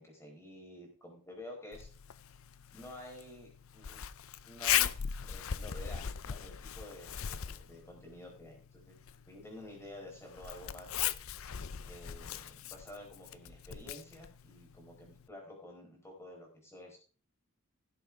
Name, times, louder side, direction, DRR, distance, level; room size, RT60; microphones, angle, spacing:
voice 1, 0.0-1.9 2.7-4.0 4.4-5.0 5.3-11.0 11.8-17.0, left 1 dB, 10° left, 0 dB, 4.7 m, -50 dB
Zipper (clothing), 1.7-15.3, left 10 dB, 65° left, 0.6 m, -39 dB
16.5 x 7.9 x 3.6 m, 0.38 s
head